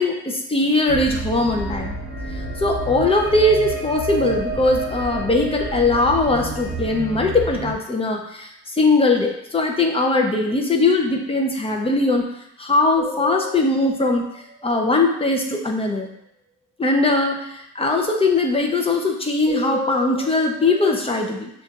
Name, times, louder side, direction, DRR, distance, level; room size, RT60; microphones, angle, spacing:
voice 1, 0.0-2.0 2.3-12.3 12.6-14.2 14.6-16.1 16.8-21.5, left 2 dB, 20° left, 2 dB, 0.7 m, -20 dB
sound 1, 0.9-7.7, right 2 dB, 35° right, 1.3 m, -29 dB
sound 2, 12.9-15.4 19.4-21.1, left 3 dB, 15° right, 1.2 m, -34 dB
6.3 x 2.5 x 2.4 m, 0.78 s
cardioid pair, 90°, 30 cm